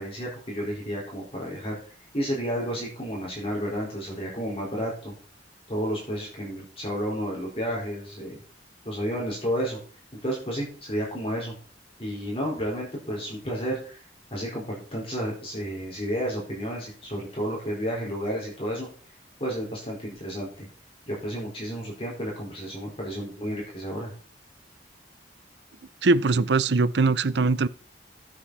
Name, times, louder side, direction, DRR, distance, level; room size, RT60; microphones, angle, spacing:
voice 1, 0.0-5.1 5.7-8.4 8.8-9.8 10.2-11.5 12.0-14.0 14.3-18.9 19.4-20.7 21.1-24.1, equal, 30° left, 4.5 m, -31 dB
voice 2, 26.0-27.7, right 3 dB, 70° right, 0.6 m, -21 dB
13.0 x 7.9 x 4.1 m
head